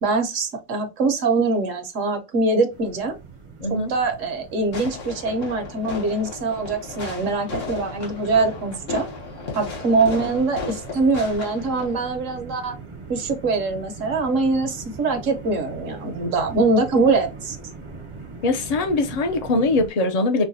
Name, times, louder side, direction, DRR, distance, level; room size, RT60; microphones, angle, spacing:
voice 1, 0.0-3.2 3.9-9.1 9.5-12.7 13.1-17.6, right 3 dB, 70° right, 1.2 m, -23 dB
sound 1, 2.7-19.9, right 4 dB, 35° right, 0.5 m, -41 dB
voice 2, 3.6-3.9 18.4-20.5, left 2 dB, 40° left, 0.6 m, -22 dB
Fireworks, 4.7-12.1, left 4 dB, 70° left, 1.5 m, -35 dB
5.4 x 2.2 x 2.6 m
omnidirectional pair, 1.4 m